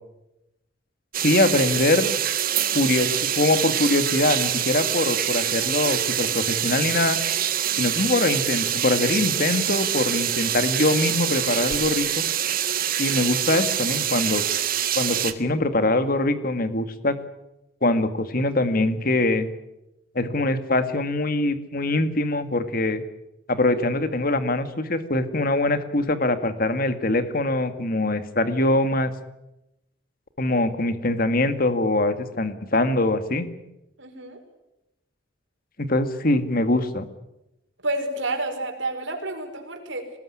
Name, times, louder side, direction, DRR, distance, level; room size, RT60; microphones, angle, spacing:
sound 1, 1.1-15.3, right 10 dB, 50° right, 1.7 m, -25 dB
voice 1, 1.2-2.1 2.7-7.2 7.8-12.2 13.0-14.4 15.0-17.2 17.8-19.5 20.2-23.0 23.5-29.1 30.4-33.5 35.8-37.1, left 2 dB, 50° left, 10 dB, 2.0 m, -23 dB
voice 2, 34.0-34.4 37.8-40.1, right 2 dB, 75° right, 4 dB, 5.2 m, -29 dB
24.5 x 20.0 x 9.9 m, 0.92 s
head